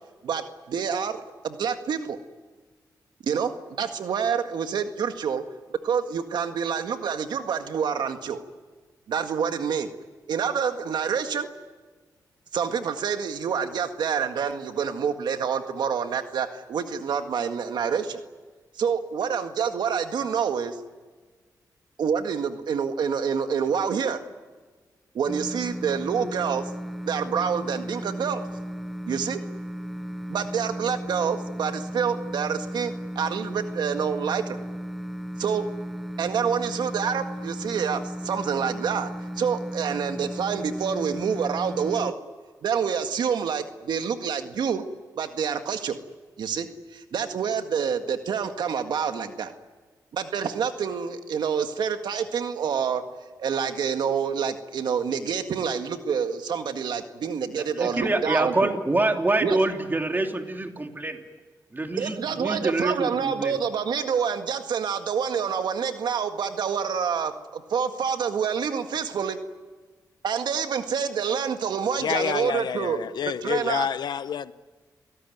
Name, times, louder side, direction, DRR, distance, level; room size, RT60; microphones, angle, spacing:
voice 1, 0.2-2.2 3.2-3.5 3.8-5.4 5.8-8.4 9.1-9.9 10.3-11.5 12.5-18.2 18.8-20.8 22.0-24.2 25.1-26.6 27.0-28.4 29.1-29.4 30.3-34.6 35.4-35.6 36.2-39.1 39.4-42.1 42.6-44.8 45.2-46.0 46.4-49.5 50.1-53.0 53.4-58.7 59.4-59.6 62.0-69.4 70.2-73.0 73.4-73.9, right 7 dB, 80° right, 7 dB, 1.8 m, -27 dB
sound 1, 25.3-42.1, equal, ahead, 0.9 m, -35 dB
voice 2, 57.5-61.2 61.7-63.6, right 2 dB, 25° right, 4 dB, 3.2 m, -26 dB
voice 3, 72.0-74.5, left 8 dB, 75° left, 15 dB, 0.9 m, -28 dB
29.5 x 18.0 x 9.4 m, 1.4 s
cardioid pair, 65°, 7 cm